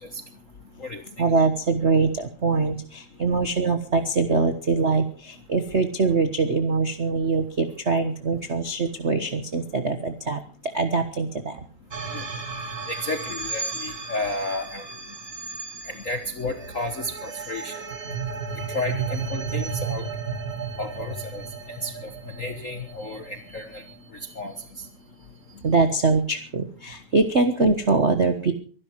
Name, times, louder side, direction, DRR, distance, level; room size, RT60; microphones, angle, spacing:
voice 1, 1.2-10.4 10.7-11.5 25.6-28.5, right 4 dB, 70° right, 8 dB, 0.6 m, -23 dB
sound 1, 11.9-24.3, right 5 dB, 35° right, 1.1 m, -34 dB
voice 2, 12.9-14.9 15.8-17.8 18.7-20.1 20.8-21.4 21.8-22.1 22.4-23.8 24.3-24.9, left 2 dB, 50° left, 7 dB, 0.9 m, -32 dB
23.5 x 12.0 x 4.6 m, 0.40 s
omnidirectional pair, 3.3 m